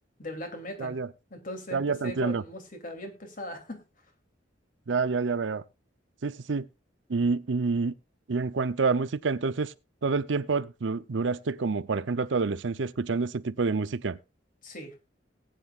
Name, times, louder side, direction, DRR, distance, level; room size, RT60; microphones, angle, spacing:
voice 1, 0.2-1.0 1.3-3.8 14.6-14.9, left 1 dB, 50° left, 2.9 m, -39 dB
voice 2, 1.7-2.4 4.9-5.6 6.2-6.7 7.1-7.9 8.3-9.7 10.0-14.2, right 4 dB, 75° right, 0.6 m, -28 dB
19.0 x 9.2 x 2.4 m
head